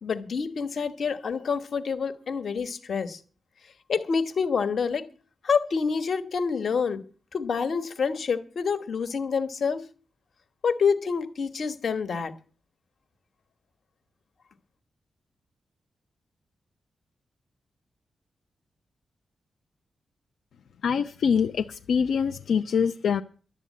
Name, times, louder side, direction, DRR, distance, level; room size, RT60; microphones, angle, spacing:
voice 1, 0.0-3.2 3.9-5.1 5.4-7.0 7.3-9.8 10.6-12.3, left 5 dB, 50° left, 1.2 m, -27 dB
voice 2, 20.8-23.2, left 6 dB, 80° left, 0.6 m, -24 dB
12.0 x 8.3 x 8.4 m
wide cardioid pair, 170°, 0 cm